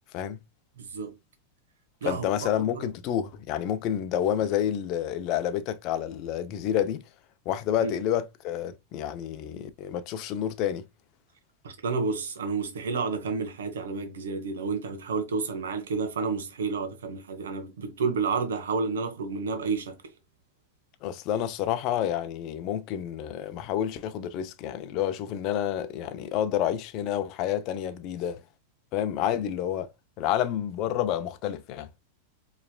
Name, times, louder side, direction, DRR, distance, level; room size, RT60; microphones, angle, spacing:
voice 1, 0.8-1.2 2.0-2.3 2.7-2.9 7.8-7.9 11.6-20.0, right 4 dB, 90° right, 1.1 m, -30 dB
voice 2, 2.0-7.0 7.5-10.8 21.0-28.4 28.9-29.9 30.2-31.9, left 10 dB, 45° left, 0.6 m, -29 dB
4.7 x 3.3 x 2.2 m
hypercardioid pair, 125°, 0 cm